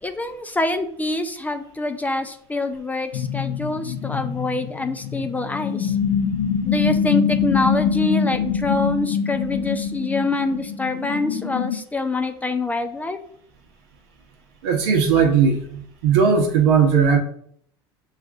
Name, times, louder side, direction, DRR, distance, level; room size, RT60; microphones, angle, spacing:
voice 1, 0.0-6.0 6.6-13.2, left 2 dB, 10° left, 7 dB, 0.4 m, -25 dB
sound 1, 3.1-11.8, left 7 dB, 85° left, 0.6 m, -24 dB
voice 2, 14.6-17.2, right 6 dB, 85° right, 2 dB, 0.8 m, -18 dB
6.4 x 2.4 x 2.4 m, 0.63 s
supercardioid pair, 95°, 13 cm